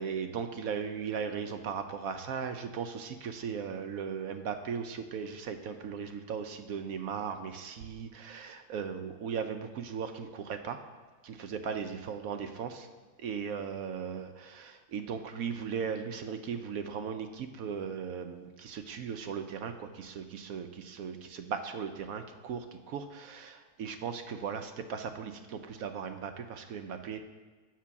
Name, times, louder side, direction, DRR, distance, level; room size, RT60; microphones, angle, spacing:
voice 1, 0.0-10.8 11.2-12.9 13.2-27.2, right 6 dB, 70° right, 8 dB, 1.0 m, -37 dB
7.4 x 6.0 x 7.0 m, 1.4 s
omnidirectional pair, 1.7 m